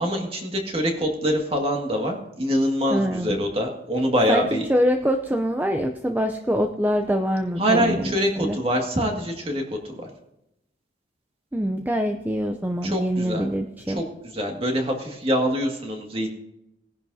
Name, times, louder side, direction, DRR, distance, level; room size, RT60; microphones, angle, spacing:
voice 1, 0.0-4.7 7.6-10.1 12.8-13.5 13.9-14.1 14.3-16.3, equal, 35° right, 2 dB, 1.9 m, -24 dB
voice 2, 2.9-3.4 4.3-4.4 4.7-8.6 11.5-14.0, equal, 10° right, 4 dB, 0.5 m, -24 dB
19.5 x 10.5 x 2.7 m, 0.84 s
head